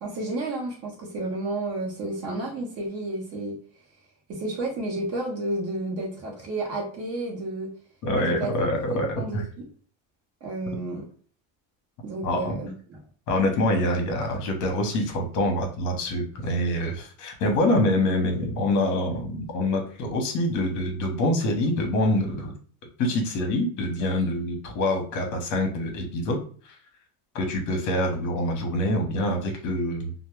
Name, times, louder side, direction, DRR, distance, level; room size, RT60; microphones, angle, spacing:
voice 1, 0.0-3.6 4.3-7.7 8.2-8.5 8.9-9.4 10.4-11.1 12.0-13.0, right 2 dB, 40° right, -1 dB, 0.8 m, -31 dB
voice 2, 8.0-9.4 12.2-12.6 13.3-22.5 23.0-26.4 26.6-26.7 27.3-30.1, left 1 dB, 50° left, 3 dB, 0.8 m, -25 dB
2.0 x 2.0 x 3.0 m, 0.43 s
cardioid pair, 135°, 39 cm